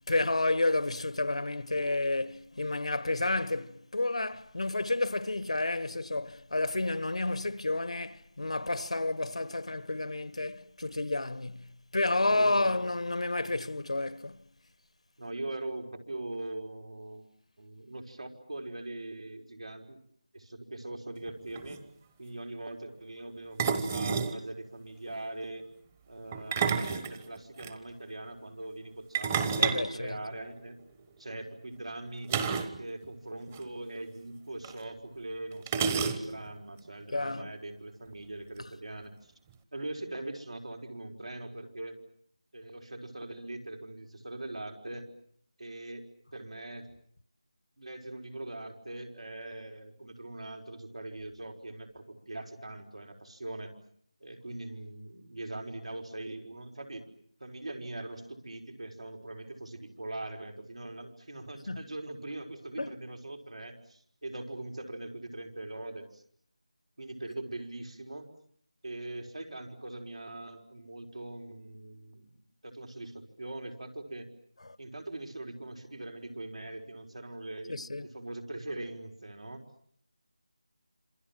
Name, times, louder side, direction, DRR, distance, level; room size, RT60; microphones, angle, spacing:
voice 1, 0.1-14.4 29.6-30.2 37.1-37.5 61.7-61.8 62.8-63.0 74.6-74.8 77.7-78.1, left 2 dB, 80° left, 1.3 m, -30 dB
voice 2, 12.2-12.8 15.2-17.2 17.6-20.0 20.3-21.8 22.2-25.7 26.1-30.8 31.2-32.3 32.8-39.1 39.7-42.0 42.5-45.1 45.6-46.0 46.3-46.9 47.8-53.7 54.2-57.1 57.4-66.2 67.0-68.3 68.8-72.3 72.6-74.3 74.8-79.6, right 2 dB, 85° right, 5.1 m, -41 dB
sound 1, 21.3-21.4 21.5-21.8 23.6-24.4 26.3-27.7 29.1-30.8 32.3-32.8 33.0-33.1 33.5-33.6 34.6-34.7 35.7-36.5, right 6 dB, 15° right, 1.1 m, -30 dB
27.5 x 27.0 x 7.5 m
figure-of-eight pair, 170°, 3 cm